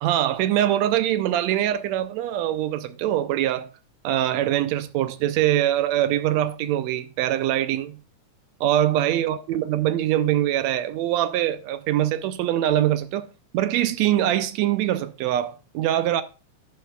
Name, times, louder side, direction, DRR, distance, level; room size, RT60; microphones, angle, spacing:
voice 1, 0.0-3.7 4.0-8.0 8.6-13.3 13.5-16.2, right 12 dB, 75° right, 1.8 m, -23 dB
11.0 x 10.5 x 2.3 m
omnidirectional pair, 3.4 m